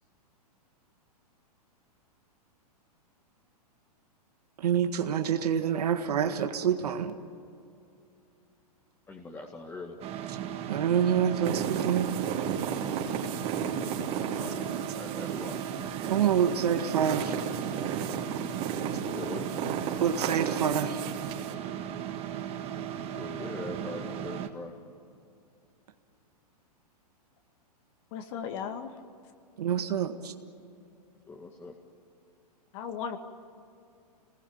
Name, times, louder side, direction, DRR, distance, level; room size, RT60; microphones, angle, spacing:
voice 1, 4.6-7.2 10.7-12.1 16.0-17.4 20.0-21.0 29.6-30.3, right 8 dB, 75° right, 6 dB, 1.7 m, -27 dB
voice 2, 9.1-9.9 13.8-15.6 19.1-19.4 23.2-24.7 31.3-31.7, left 3 dB, 10° left, 1 dB, 1.9 m, -42 dB
sound 1, 10.0-24.5, right 9 dB, 30° right, 1.8 m, -37 dB
sound 2, 11.4-21.5, right 7 dB, 45° right, 3.7 m, -34 dB
voice 3, 28.1-28.9 32.7-33.2, left 7 dB, 50° left, 6 dB, 2.3 m, -36 dB
28.0 x 20.0 x 8.9 m, 2.6 s
hypercardioid pair, 120°, 20 cm